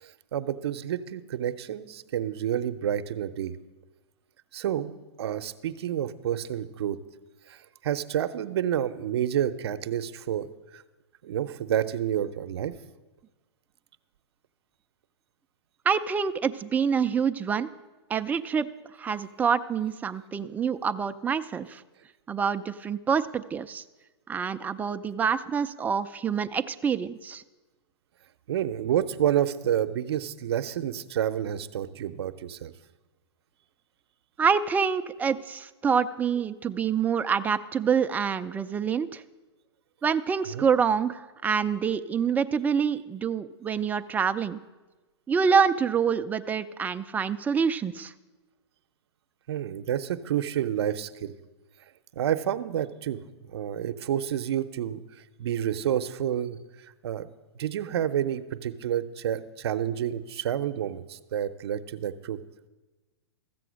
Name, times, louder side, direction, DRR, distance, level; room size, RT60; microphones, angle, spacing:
voice 1, 0.0-3.6 4.5-7.0 7.5-10.8 11.2-12.8 28.5-32.7 40.5-40.7 49.5-51.4 52.1-53.2 53.5-55.0 55.4-56.6 57.0-62.4, right 10 dB, 70° right, 10 dB, 0.7 m, -29 dB
voice 2, 15.9-17.7 18.1-18.7 19.0-21.8 22.3-23.8 24.3-27.4 34.4-39.2 40.0-44.6 45.3-48.1, right 6 dB, 10° right, 10 dB, 0.4 m, -26 dB
14.0 x 7.6 x 6.3 m, 1.2 s
hypercardioid pair, 125°, 14 cm